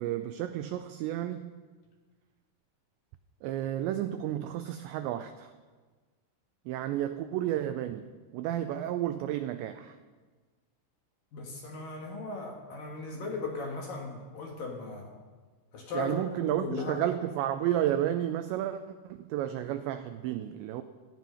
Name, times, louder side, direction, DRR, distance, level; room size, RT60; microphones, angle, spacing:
voice 1, 0.0-1.5 3.4-5.5 6.7-10.0 15.9-20.8, right 12 dB, 90° right, 9 dB, 2.5 m, -32 dB
voice 2, 11.3-15.1 15.7-16.1 16.4-17.0, left 3 dB, 55° left, 0 dB, 2.8 m, -37 dB
18.0 x 13.5 x 5.7 m, 1.4 s
omnidirectional pair, 5.8 m